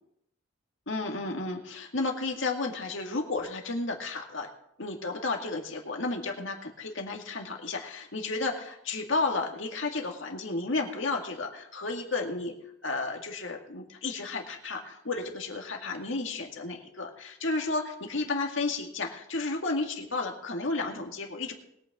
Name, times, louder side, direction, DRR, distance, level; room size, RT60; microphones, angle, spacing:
voice 1, 0.9-4.5 4.8-12.5 12.8-21.5, left 3 dB, 65° left, 2 dB, 2.1 m, -32 dB
21.5 x 8.9 x 3.7 m, 0.74 s
head